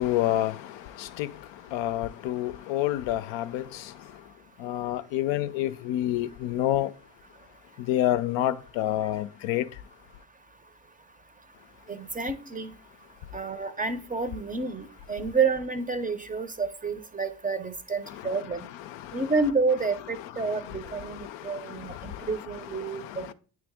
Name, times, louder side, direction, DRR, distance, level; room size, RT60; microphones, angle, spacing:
voice 1, 0.0-1.3 1.7-3.9 4.6-6.9 7.8-9.7 18.1-19.3 20.2-23.3, left 13 dB, 65° left, 0.5 m, -29 dB
voice 2, 11.9-12.7 13.3-18.6 19.1-23.3, right 4 dB, 15° right, 0.6 m, -29 dB
9.0 x 3.3 x 3.5 m
hypercardioid pair, 60°, 48 cm